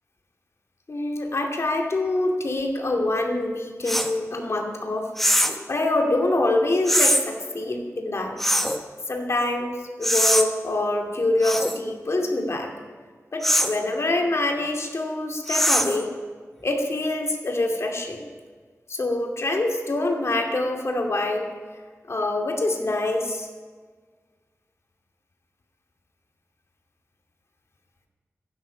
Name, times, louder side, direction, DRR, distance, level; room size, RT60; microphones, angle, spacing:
voice 1, 0.9-5.1 5.7-8.3 9.1-12.7 13.3-16.1 16.6-18.3 18.9-21.5 22.1-23.5, left 2 dB, 55° left, 2 dB, 2.4 m, -25 dB
sound 1, 3.9-4.1 5.2-5.6 6.9-7.2 8.4-8.8 10.0-10.5 11.4-11.8 13.4-13.8 15.5-16.0, equal, 5° left, 1.1 m, -21 dB
15.5 x 15.5 x 5.1 m, 1.5 s
wide cardioid pair, 100°, 5 cm